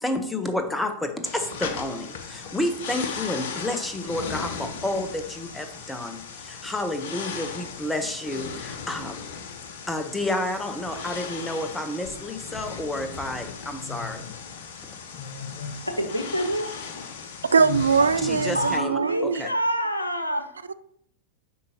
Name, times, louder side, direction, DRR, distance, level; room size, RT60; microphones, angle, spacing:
voice 1, 0.0-9.2 9.9-14.2 18.2-19.5, left 1 dB, 10° left, 0.9 m, -30 dB
sound 1, 1.3-18.8, left 6 dB, 55° left, 0.9 m, -37 dB
voice 2, 15.9-17.3 18.0-18.1 18.5-20.5, right 1 dB, 85° left, 0.8 m, -27 dB
voice 3, 17.5-19.4 20.7-20.8, right 5 dB, 75° right, 0.3 m, -22 dB
8.4 x 5.3 x 2.9 m
figure-of-eight pair, 90°, 0 cm